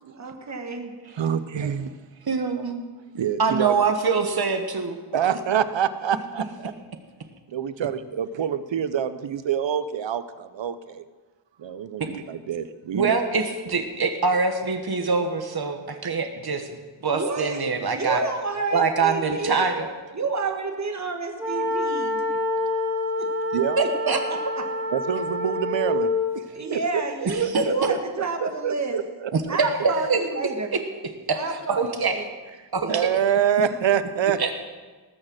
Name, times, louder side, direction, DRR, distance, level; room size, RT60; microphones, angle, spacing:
voice 1, 0.1-0.9 17.1-19.7 20.1-22.2 23.1-23.3 23.8-23.9 24.3-24.4 26.5-29.0 29.5-30.7 31.3-32.2 32.7-33.1, right 3 dB, 40° right, 4 dB, 1.5 m, -30 dB
voice 2, 1.2-1.9 3.1-3.8 5.1-6.7 7.5-11.0 11.6-13.2 23.5-23.8 24.9-27.0 27.4-28.0 28.4-29.6 32.9-34.5, right 8 dB, 80° right, 13 dB, 0.7 m, -26 dB
voice 3, 2.2-2.8 3.4-5.0 12.0-12.1 12.9-16.7 17.0-18.2 18.7-19.9 23.8-24.2 27.5-27.6 29.3-29.4 30.1-30.2 31.3-31.4 31.7-32.2 32.7-33.1 34.4-34.5, right 4 dB, 55° right, 6 dB, 1.5 m, -24 dB
sound 1, 21.4-26.3, left 2 dB, 5° right, 2.7 m, -27 dB
19.5 x 6.6 x 6.3 m, 1.4 s
wide cardioid pair, 100°, 44 cm